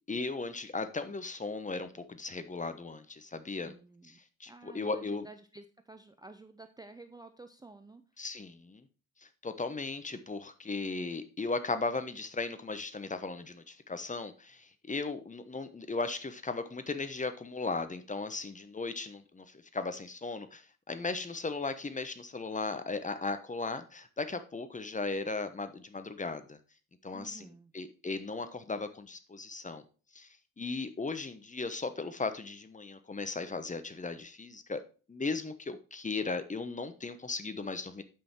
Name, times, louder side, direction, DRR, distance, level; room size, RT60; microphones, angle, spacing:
voice 1, 0.1-3.7 4.0-5.3 8.2-8.8 9.4-19.4 19.7-26.6 27.0-29.8 30.1-30.3 30.6-34.8 35.1-38.0, left 3 dB, 20° left, 1.0 m, -37 dB
voice 2, 3.6-4.2 4.5-8.0 27.1-27.7, right 3 dB, 10° right, 0.6 m, -52 dB
8.7 x 5.5 x 4.4 m
figure-of-eight pair, 50°, 42 cm